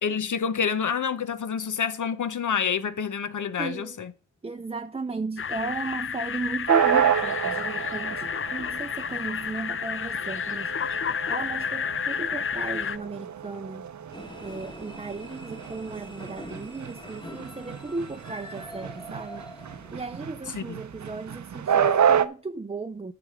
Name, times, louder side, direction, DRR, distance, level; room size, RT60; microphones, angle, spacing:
voice 1, 0.0-4.1 20.5-20.8, left 7 dB, 75° left, 0.8 m, -28 dB
voice 2, 3.6-4.0 4.4-13.9 14.4-19.4 19.9-23.1, right 3 dB, 20° right, 0.5 m, -35 dB
sound 1, 5.4-13.0, left 7 dB, 45° left, 0.4 m, -31 dB
sound 2, 6.7-22.2, right 8 dB, 65° right, 0.6 m, -28 dB
sound 3, 14.1-20.4, equal, 15° left, 1.5 m, -44 dB
9.3 x 6.0 x 5.0 m
cardioid pair, 55°, 31 cm